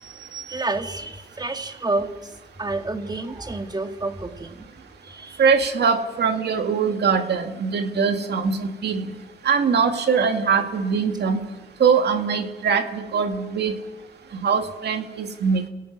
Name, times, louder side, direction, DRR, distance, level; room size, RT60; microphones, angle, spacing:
voice 1, 0.0-2.1 2.6-4.6 5.1-5.4, right 2 dB, 20° right, 7 dB, 2.1 m, -29 dB
voice 2, 5.4-9.1 9.4-11.4 11.8-13.7 14.3-15.7, right 6 dB, 55° right, 6 dB, 2.4 m, -22 dB
28.0 x 17.5 x 6.2 m, 1.1 s
cardioid pair, 90°, 20 cm